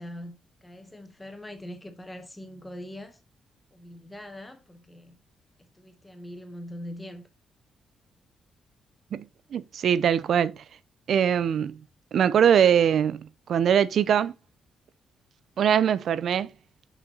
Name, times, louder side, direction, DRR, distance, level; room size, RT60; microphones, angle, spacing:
voice 1, 0.0-3.2 3.7-5.2 5.7-7.2, left 1 dB, 10° left, 0.9 m, -42 dB
voice 2, 9.5-10.6 11.1-11.8 12.1-14.3 15.6-16.5, right 8 dB, 60° right, 0.5 m, -22 dB
6.7 x 5.8 x 4.1 m
cardioid pair, 130°, 0 cm